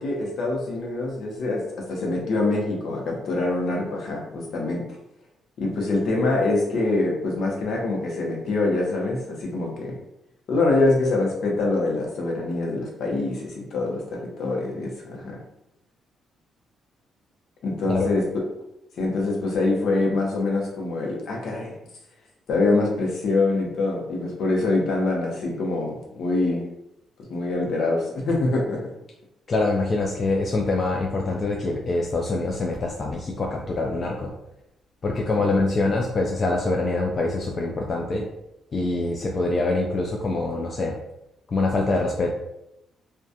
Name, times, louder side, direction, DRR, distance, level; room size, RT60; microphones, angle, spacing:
voice 1, 0.0-4.8 5.6-10.0 10.5-15.4 17.6-18.4 19.0-21.7 22.5-26.6 27.3-28.8 35.3-35.5, left 2 dB, 70° left, -1 dB, 0.7 m, -25 dB
voice 2, 29.5-34.3 35.0-38.3 38.7-41.0 41.5-42.3, left 2 dB, 40° left, 0 dB, 0.3 m, -24 dB
2.3 x 2.2 x 2.6 m, 0.84 s
cardioid pair, 90°, 0 cm